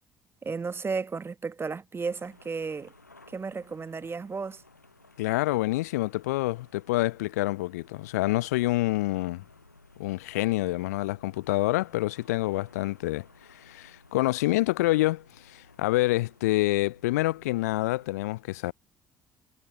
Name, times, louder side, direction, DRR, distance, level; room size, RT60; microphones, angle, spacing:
voice 1, 0.4-2.9 3.3-4.6, right 4 dB, 25° right, 1.1 m, -33 dB
sound 1, 2.0-18.2, left 3 dB, 90° left, 6.8 m, -57 dB
voice 2, 5.2-9.4 10.0-18.7, left 18 dB, 75° left, 0.7 m, -27 dB
figure-of-eight pair, 50°, 9 cm